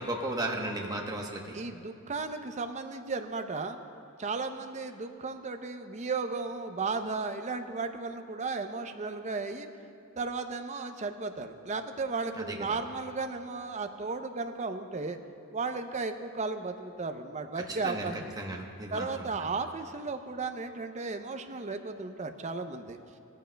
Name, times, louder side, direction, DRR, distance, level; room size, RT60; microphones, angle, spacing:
voice 1, 0.0-1.6 12.4-12.7 17.5-18.1 18.4-19.3, right 1 dB, 15° right, 1 dB, 1.0 m, -35 dB
voice 2, 1.5-3.8 4.2-9.7 10.2-15.2 15.5-18.3 18.9-23.0, right 4 dB, 30° right, 7 dB, 0.6 m, -35 dB
18.0 x 14.5 x 2.2 m, 2.7 s
head